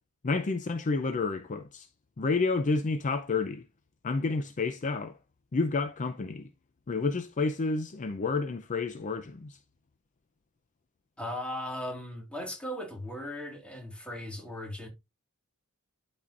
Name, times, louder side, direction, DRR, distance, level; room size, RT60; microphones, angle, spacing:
voice 1, 0.2-1.9 2.2-3.6 4.0-5.2 5.5-6.5 6.9-9.6, left 3 dB, 35° left, 0.5 m, -30 dB
voice 2, 11.2-14.9, left 1 dB, 5° left, 1.9 m, -37 dB
12.0 x 4.3 x 2.5 m
head